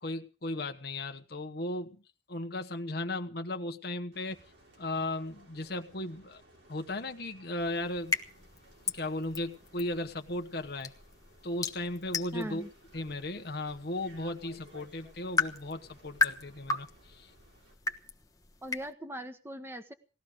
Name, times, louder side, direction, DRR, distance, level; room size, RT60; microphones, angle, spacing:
voice 1, 0.0-2.0 2.3-4.4 4.8-6.4 6.7-8.1 8.9-10.9 11.4-12.6 12.9-17.3, left 1 dB, 55° left, 5 dB, 1.2 m, -36 dB
sound 1, 4.1-17.8, equal, 80° right, 6.5 m, -60 dB
sound 2, 7.6-18.9, left 4 dB, 20° left, 1.2 m, -37 dB
voice 2, 12.3-12.7 18.6-19.9, right 1 dB, 15° right, 7 dB, 1.4 m, -40 dB
19.0 x 14.0 x 5.1 m, 0.36 s
head